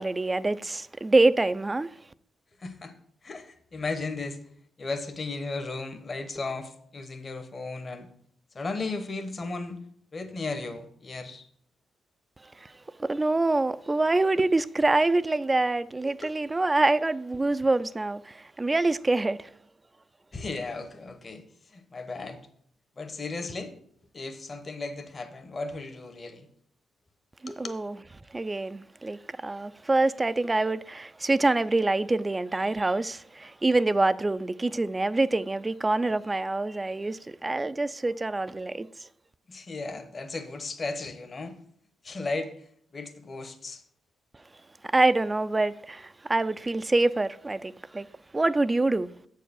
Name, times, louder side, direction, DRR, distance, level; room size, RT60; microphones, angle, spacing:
voice 1, 0.0-1.9 13.0-19.5 27.4-27.9 28.3-38.9 44.9-48.1 48.3-49.1, right 2 dB, 20° right, 0.3 m, -25 dB
voice 2, 2.6-2.9 3.2-4.4 4.8-8.1 8.5-9.8 10.1-11.5 16.0-16.4 20.3-22.4 23.0-23.7 24.1-26.5 27.5-27.8 39.5-41.6 42.0-42.7 42.9-43.8, left 3 dB, 40° left, 1.0 m, -35 dB
7.2 x 4.7 x 7.0 m
cardioid pair, 80°, 0 cm